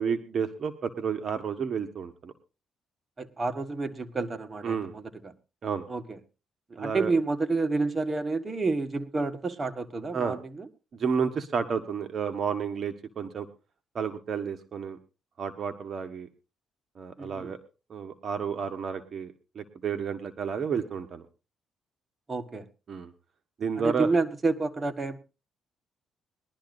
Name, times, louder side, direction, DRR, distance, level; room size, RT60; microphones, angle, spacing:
voice 1, 0.0-2.3 4.6-4.9 5.6-5.8 6.8-7.1 10.1-10.4 10.9-13.5 13.9-15.0 15.4-16.3 17.0-17.6 17.9-21.2 22.9-23.1 23.6-24.1, right 6 dB, 50° right, 8 dB, 1.3 m, -31 dB
voice 2, 3.2-5.3 5.9-6.2 6.7-10.7 17.2-17.5 22.3-22.7 23.8-25.2, right 3 dB, 30° right, 7 dB, 1.5 m, -29 dB
21.5 x 12.0 x 2.6 m, 0.30 s
cardioid pair, 90°, 0 cm